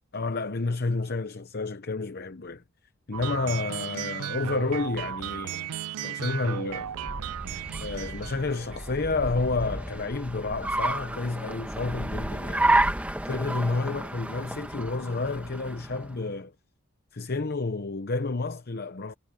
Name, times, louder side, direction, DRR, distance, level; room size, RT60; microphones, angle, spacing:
voice 1, 0.1-2.6 3.1-6.9 7.8-12.8 13.3-16.5 17.1-19.1, left 3 dB, 45° left, 0.8 m, -30 dB
sound 1, 3.1-8.9, right 10 dB, 85° right, 0.4 m, -35 dB
Car, 6.7-16.2, right 2 dB, 5° right, 1.3 m, -31 dB
head